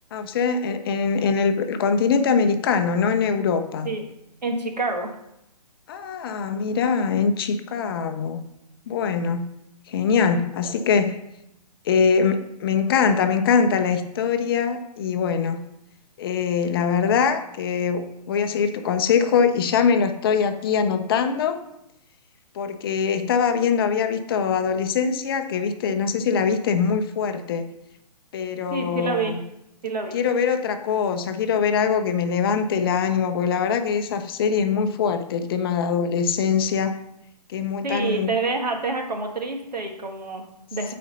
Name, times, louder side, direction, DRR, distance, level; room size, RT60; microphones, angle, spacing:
voice 1, 0.1-3.9 5.9-8.4 8.9-9.5 9.9-11.2 11.8-15.6 16.2-21.6 22.5-27.7 28.3-29.4 30.1-37.0 37.5-38.3, left 6 dB, 35° left, 8 dB, 0.6 m, -23 dB
voice 2, 4.4-5.1 10.3-10.7 28.7-29.4 29.8-30.2 37.8-41.0, right 3 dB, 80° right, 4 dB, 1.5 m, -28 dB
7.9 x 4.2 x 5.4 m, 0.84 s
hypercardioid pair, 140°, 21 cm